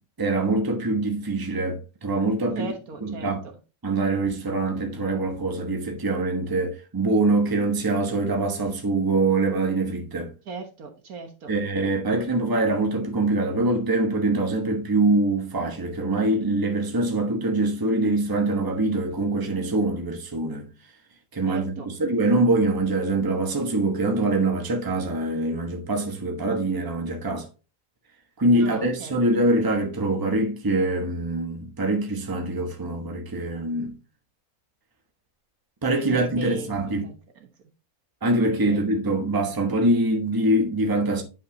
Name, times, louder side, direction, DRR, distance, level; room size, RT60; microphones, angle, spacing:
voice 1, 0.2-2.7 3.0-3.4 3.8-10.3 11.5-20.7 21.3-27.5 28.4-33.9 35.8-37.0 38.2-41.2, right 2 dB, 15° right, 1.1 m, -24 dB
voice 2, 2.6-3.3 10.5-11.5 21.5-21.9 28.6-29.1 36.1-37.1 37.4-37.5 38.6-38.8, right 4 dB, 70° right, 1.8 m, -37 dB
9.1 x 5.4 x 2.8 m
omnidirectional pair, 1.6 m